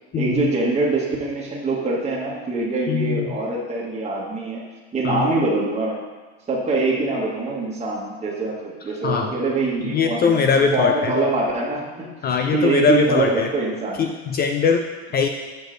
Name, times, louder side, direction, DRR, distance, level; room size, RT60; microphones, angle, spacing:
voice 1, 0.1-4.6 4.9-6.0 6.5-12.1 12.5-14.1, right 3 dB, 20° right, -4 dB, 1.3 m, -24 dB
voice 2, 2.9-3.4 5.0-5.3 9.0-9.3 9.8-11.1 12.2-13.5 14.0-14.8 15.1-15.3, left 5 dB, 30° left, 4 dB, 0.5 m, -21 dB
6.7 x 5.1 x 3.9 m, 1.3 s
supercardioid pair, 115°, 33 cm